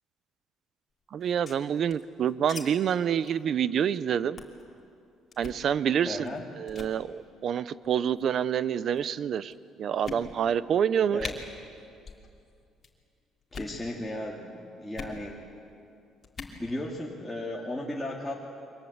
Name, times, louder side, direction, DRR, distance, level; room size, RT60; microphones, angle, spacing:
voice 1, 1.1-4.4 5.4-9.5 9.8-11.3, right 8 dB, 45° right, 16 dB, 0.7 m, -27 dB
sound 1, 1.2-2.6 2.9-3.0 3.2-3.4 3.8-4.0 4.4-4.6 5.3-5.6 6.2-6.4 6.7-6.9 7.8-8.3 9.0-9.1 9.5-9.6 10.0-10.6 10.9-11.0 11.2-11.3 12.0-12.3 12.5-12.9 13.4-13.8 14.9-15.2 16.2-16.6, left 5 dB, 30° left, 2.9 m, -41 dB
voice 2, 6.0-6.5 11.1-11.4 13.5-15.4 16.6-18.3, left 1 dB, 5° left, -4 dB, 2.3 m, -35 dB
28.5 x 24.5 x 8.0 m, 2.5 s
cardioid pair, 145°, 0 cm